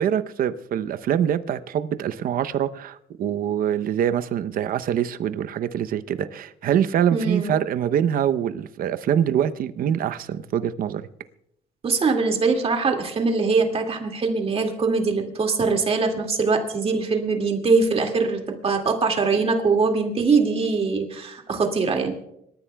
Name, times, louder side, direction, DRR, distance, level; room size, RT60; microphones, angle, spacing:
voice 1, 0.0-11.1, right 9 dB, 60° right, 0.8 m, -24 dB
voice 2, 7.1-7.5 11.8-22.1, right 4 dB, 35° right, 2.2 m, -22 dB
26.0 x 14.0 x 2.3 m
cardioid pair, 110°, 17 cm